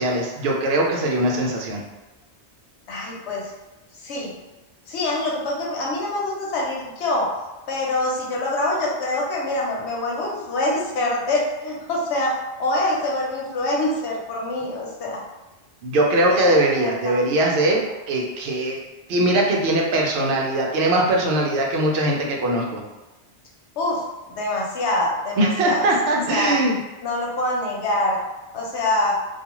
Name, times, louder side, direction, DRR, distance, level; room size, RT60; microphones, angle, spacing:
voice 1, 0.0-1.8 15.8-18.8 19.1-22.8 25.4-26.8, right 1 dB, 70° right, -1 dB, 0.8 m, -21 dB
voice 2, 2.9-3.5 4.0-4.3 4.9-7.3 7.7-15.2 16.3-17.2 23.8-25.9 26.3-26.6 27.0-28.2 28.5-29.2, left 1 dB, 85° left, -3 dB, 1.0 m, -25 dB
2.3 x 2.3 x 2.9 m, 1.1 s
omnidirectional pair, 1.1 m